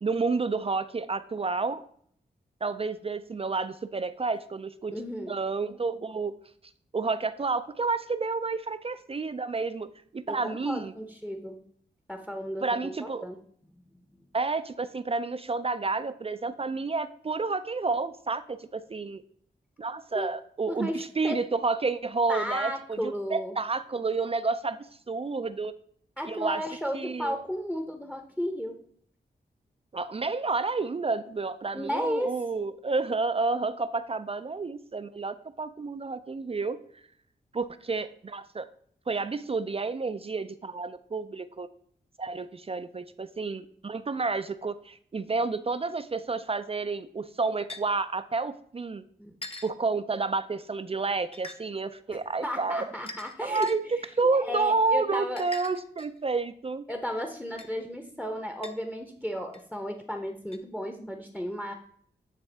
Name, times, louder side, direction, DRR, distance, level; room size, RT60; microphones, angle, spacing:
voice 1, 0.0-1.8 2.6-4.9 5.3-6.3 6.9-9.9 10.1-10.9 12.6-13.3 14.3-19.2 19.8-25.7 26.2-26.6 26.9-27.3 29.9-36.8 37.5-38.7 39.1-41.7 42.2-49.0 49.6-52.9 53.4-56.8, right 4 dB, 35° right, 11 dB, 0.4 m, -30 dB
voice 2, 4.9-5.3 10.3-11.6 12.1-13.4 20.1-20.3 20.7-21.4 22.3-23.5 26.2-28.8 31.7-32.3 49.2-49.4 52.4-53.7 54.5-55.5 56.9-61.7, equal, 5° left, 4 dB, 0.8 m, -34 dB
sound 1, 47.7-47.8 49.4-49.7 51.3-51.6 53.1-53.8 55.4-56.2 57.6-57.7 58.6-58.7 59.5-59.6 60.5-60.6, left 2 dB, 35° left, 0.9 m, -41 dB
9.8 x 3.4 x 3.4 m, 0.62 s
cardioid pair, 55°, 18 cm